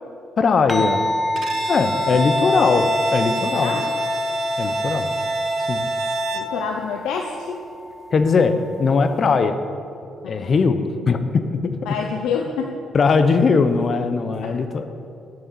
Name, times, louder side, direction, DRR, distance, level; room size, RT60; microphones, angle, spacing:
voice 1, 0.4-1.1 1.6-3.8 4.6-5.1 5.7-5.9 8.1-9.6 10.3-11.7 12.9-14.9, left 4 dB, 45° left, 9 dB, 0.7 m, -20 dB
sound 1, 0.7-9.4, left 1 dB, 10° left, 0.5 m, -29 dB
Bowed string instrument, 1.4-6.6, right 5 dB, 60° right, 0.7 m, -31 dB
Wind instrument woodwind instrument, 1.8-6.4, left 2 dB, 25° left, 1.3 m, -26 dB
voice 2, 3.5-3.9 4.6-4.7 6.3-7.6 10.2-10.5 11.9-12.8 14.4-14.5, left 6 dB, 90° left, 2 dB, 0.6 m, -27 dB
6.8 x 6.7 x 7.8 m, 2.5 s
cardioid pair, 90°, 0 cm